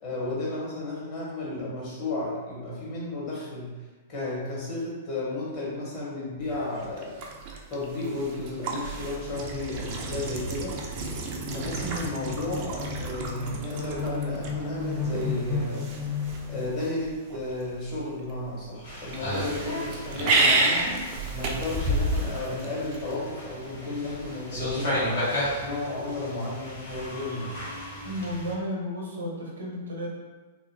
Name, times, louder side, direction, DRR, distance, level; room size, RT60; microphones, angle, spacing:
voice 1, 0.0-3.7 4.1-7.2 7.7-11.1 11.5-15.9 16.5-20.8 21.3-25.3 25.6-27.7, left 2 dB, 35° left, -7 dB, 1.3 m, -33 dB
sound 1, 6.4-23.1, right 3 dB, 40° right, 0.4 m, -32 dB
sound 2, 7.3-17.0, left 4 dB, 20° left, 0.6 m, -36 dB
sound 3, 18.8-28.5, left 1 dB, 65° left, 1.0 m, -33 dB
voice 2, 28.0-30.1, equal, 70° right, -3 dB, 0.7 m, -33 dB
2.7 x 2.4 x 2.6 m, 1.3 s
figure-of-eight pair, 100°, 0 cm